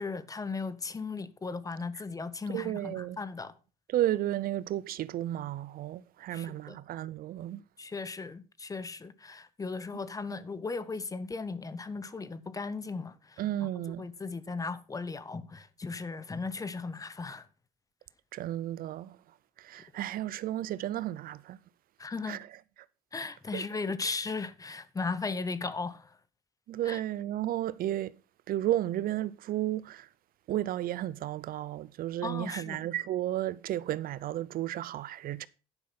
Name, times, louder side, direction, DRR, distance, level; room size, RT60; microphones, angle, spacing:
voice 1, 0.0-3.5 6.3-6.8 7.8-13.7 14.0-17.5 22.0-22.4 23.1-26.2 26.8-27.0 32.2-32.8, left 4 dB, 20° left, 0.8 m, -37 dB
voice 2, 2.5-3.2 3.9-7.6 13.4-14.1 18.3-19.2 19.6-21.6 22.3-22.5 23.5-23.7 26.7-28.2 28.5-30.1 30.5-35.5, right 13 dB, 60° right, 0.5 m, -33 dB
10.5 x 5.6 x 5.6 m
cardioid pair, 110°, 17 cm